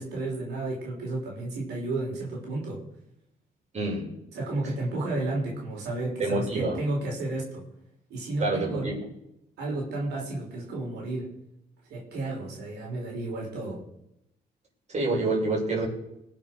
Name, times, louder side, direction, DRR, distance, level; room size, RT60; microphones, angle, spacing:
voice 1, 0.0-2.8 4.3-7.6 8.1-8.9 9.6-11.3 11.9-13.8, right 2 dB, 90° right, -2 dB, 4.8 m, -32 dB
voice 2, 3.7-4.0 6.2-6.8 8.4-8.9 14.9-15.9, right 2 dB, 45° right, -2 dB, 6.9 m, -27 dB
20.5 x 7.3 x 6.5 m, 0.81 s
cardioid pair, 80°, 17 cm